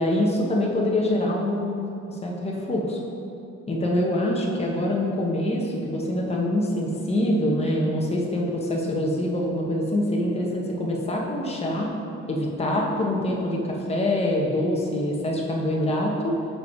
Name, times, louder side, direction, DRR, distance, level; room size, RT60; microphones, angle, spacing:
voice 1, 0.0-3.0 3.7-12.0 12.3-16.4, left 1 dB, 20° left, -2 dB, 1.1 m, -25 dB
6.4 x 4.8 x 4.8 m, 2.8 s
cardioid pair, 90°, 30 cm